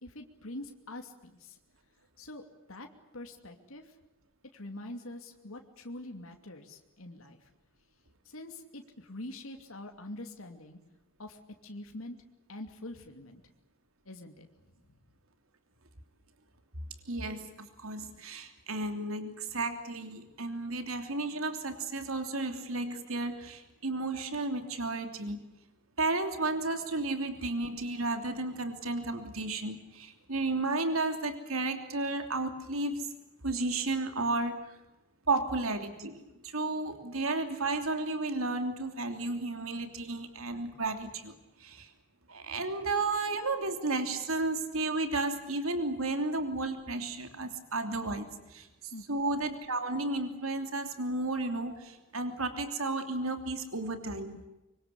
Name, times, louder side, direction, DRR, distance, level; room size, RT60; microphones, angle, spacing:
voice 1, 0.0-1.6 2.2-2.9 3.1-3.9 4.5-7.5 8.2-10.8 11.2-12.2 12.5-13.4 14.0-14.5 14.9-15.0 48.9-49.2, left 1 dB, 80° left, 4 dB, 2.8 m, -45 dB
voice 2, 17.1-25.4 26.0-33.1 33.4-34.7 35.3-41.3 41.6-41.9 42.3-48.7 49.1-54.4, right 2 dB, 90° right, 7 dB, 3.1 m, -33 dB
25.0 x 24.5 x 8.4 m, 0.97 s
head